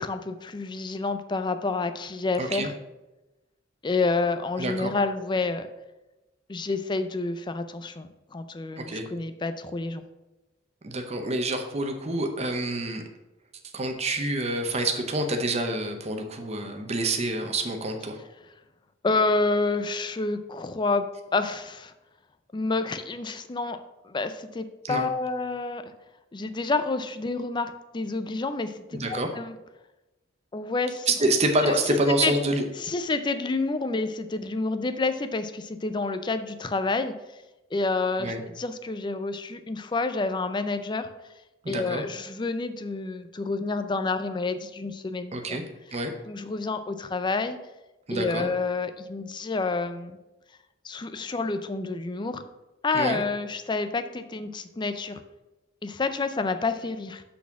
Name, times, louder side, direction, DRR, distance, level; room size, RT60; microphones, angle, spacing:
voice 1, 0.0-2.7 3.8-5.7 6.5-10.0 19.0-21.9 22.5-23.8 24.0-25.8 26.3-28.8 29.1-29.5 30.5-31.1 31.6-32.3 32.8-37.1 37.7-41.1 41.7-45.6 46.3-47.6 48.1-50.2 50.8-52.4 52.8-55.2 55.8-57.2, left 3 dB, 25° left, 10 dB, 0.4 m, -29 dB
voice 2, 2.4-2.7 4.6-4.9 8.8-9.1 10.8-13.0 13.7-18.2 24.9-25.1 28.9-29.3 31.1-32.6 38.2-38.4 41.6-42.0 45.3-45.6 45.9-46.1 48.1-48.5 52.9-53.2, right 2 dB, 35° right, 5 dB, 0.8 m, -27 dB
5.9 x 4.2 x 5.8 m, 1.0 s
head